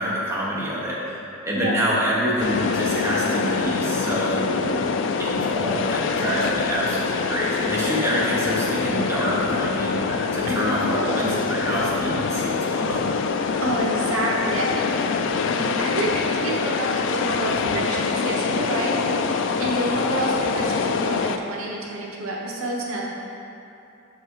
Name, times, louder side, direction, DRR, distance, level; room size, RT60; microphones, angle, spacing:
voice 1, 0.0-4.9 5.2-13.0, equal, 15° right, -7 dB, 1.0 m, -26 dB
voice 2, 1.5-2.0 10.5-11.4 13.6-23.0, right 1 dB, 85° right, -3 dB, 1.0 m, -28 dB
sound 1, 2.4-21.4, left 5 dB, 60° left, 0.3 m, -25 dB
5.9 x 4.7 x 4.6 m, 2.8 s
head